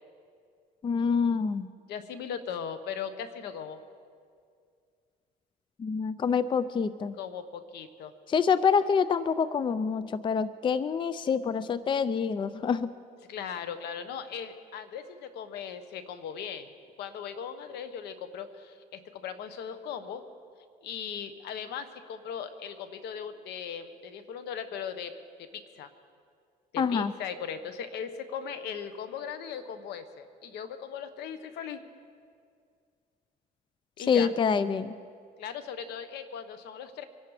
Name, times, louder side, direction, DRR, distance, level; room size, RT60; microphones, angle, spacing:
voice 1, 0.8-1.7 5.8-7.1 8.3-12.9 26.8-27.1 34.1-34.9, left 6 dB, 30° left, 15 dB, 0.5 m, -26 dB
voice 2, 1.9-3.8 7.2-8.1 13.3-16.7 17.0-20.2 20.8-25.1 25.5-25.9 26.7-31.8 34.0-34.3 35.4-37.0, left 7 dB, 80° left, 10 dB, 1.2 m, -38 dB
25.0 x 11.0 x 4.9 m, 2.2 s
cardioid pair, 110°, 17 cm